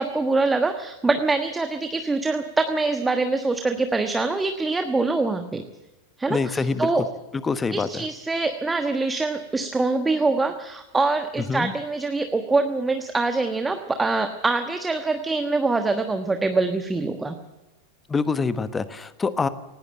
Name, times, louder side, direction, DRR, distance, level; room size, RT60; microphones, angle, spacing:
voice 1, 0.0-5.6 6.2-7.1 7.7-17.4, right 3 dB, 10° right, 7 dB, 1.3 m, -24 dB
voice 2, 6.3-6.9 7.4-8.1 11.4-11.7 18.1-19.5, left 4 dB, 15° left, 13 dB, 1.2 m, -25 dB
19.0 x 17.5 x 7.8 m, 1.0 s
figure-of-eight pair, 90°, 0 cm